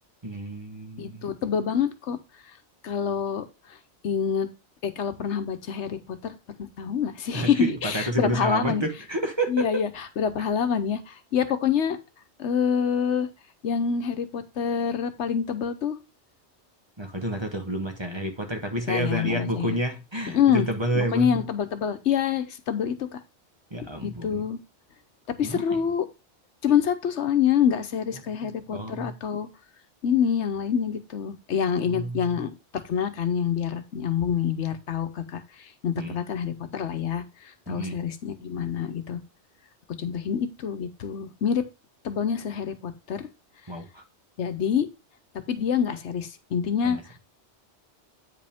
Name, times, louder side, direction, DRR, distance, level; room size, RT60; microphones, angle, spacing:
voice 1, 0.2-1.3 7.3-9.8 17.0-21.4 23.7-24.4 25.4-25.8 28.4-29.1 31.9-32.2 36.0-36.1 37.7-37.9 43.7-44.0 46.8-47.0, right 1 dB, 25° right, 1.1 m, -29 dB
voice 2, 1.0-2.2 2.8-3.4 4.0-4.5 4.8-6.4 6.8-8.8 9.5-12.0 12.4-13.3 13.6-16.0 18.9-19.8 20.2-20.7 20.9-23.2 24.0-24.6 25.4-26.1 26.6-29.5 30.0-39.2 40.0-41.6 42.0-43.3 44.4-44.9 45.5-47.0, left 8 dB, 75° left, 1.1 m, -26 dB
8.6 x 5.1 x 3.5 m
omnidirectional pair, 1.2 m